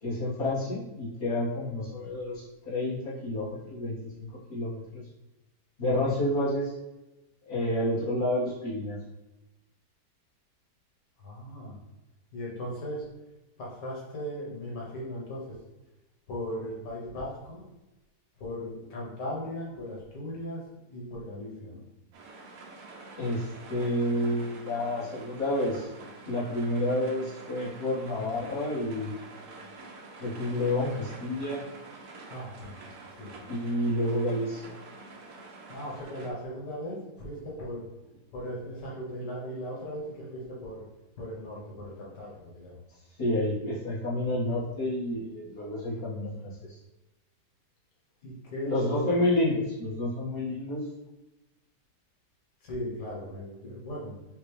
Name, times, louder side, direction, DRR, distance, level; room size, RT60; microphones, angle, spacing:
voice 1, 0.0-5.0 5.8-6.7 7.5-9.0 23.2-25.9 26.3-29.1 30.2-31.6 33.5-34.8 43.2-46.7 48.6-50.8, left 1 dB, 35° left, -10 dB, 1.9 m, -29 dB
voice 2, 11.2-11.8 12.3-13.1 13.6-15.6 16.3-17.6 18.4-20.6 20.9-21.8 32.3-32.7 33.1-33.3 35.7-37.8 38.3-40.8 41.2-42.7 48.2-49.2 52.6-54.1, equal, 85° left, -5 dB, 1.9 m, -37 dB
sound 1, 22.1-36.3, right 3 dB, 60° right, 1.1 m, -47 dB
5.6 x 2.9 x 3.3 m, 1.0 s
omnidirectional pair, 1.8 m